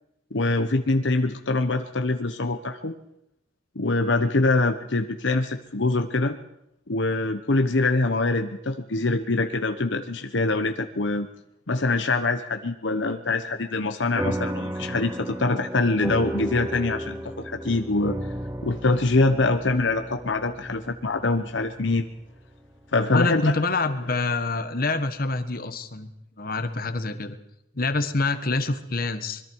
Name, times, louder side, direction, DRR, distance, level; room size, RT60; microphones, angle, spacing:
voice 1, 0.3-2.9 3.7-6.4 6.9-11.3 11.7-18.2 18.6-22.1 22.9-23.6, left 2 dB, 70° left, 6 dB, 1.1 m, -24 dB
sound 1, 14.2-22.9, right 1 dB, 15° right, 0.9 m, -34 dB
voice 2, 23.1-26.1 26.4-27.4 27.7-29.4, left 3 dB, 50° left, 10 dB, 1.4 m, -26 dB
25.5 x 22.0 x 4.8 m, 0.79 s
head